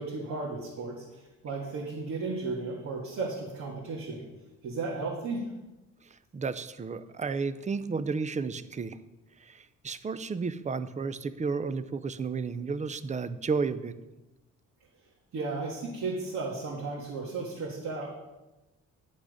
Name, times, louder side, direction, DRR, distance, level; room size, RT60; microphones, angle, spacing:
voice 1, 0.0-4.3 4.6-5.5 15.3-18.2, right 3 dB, 65° right, -4 dB, 1.9 m, -34 dB
voice 2, 6.3-9.0 9.4-13.9, right 4 dB, 25° right, 13 dB, 0.5 m, -32 dB
10.0 x 6.1 x 5.0 m, 1.0 s
cardioid pair, 90°, 30 cm